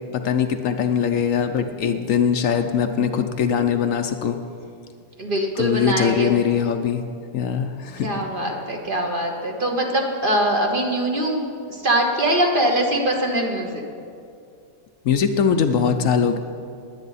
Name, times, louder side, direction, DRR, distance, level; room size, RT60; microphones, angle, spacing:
voice 1, 0.1-4.4 5.6-7.0 7.3-8.1 8.4-8.6 15.0-16.4, left 7 dB, 70° left, 7 dB, 1.0 m, -21 dB
voice 2, 5.2-6.4 8.0-13.8, right 1 dB, 40° right, 1 dB, 1.3 m, -22 dB
20.0 x 8.5 x 4.1 m, 2.4 s
omnidirectional pair, 1.5 m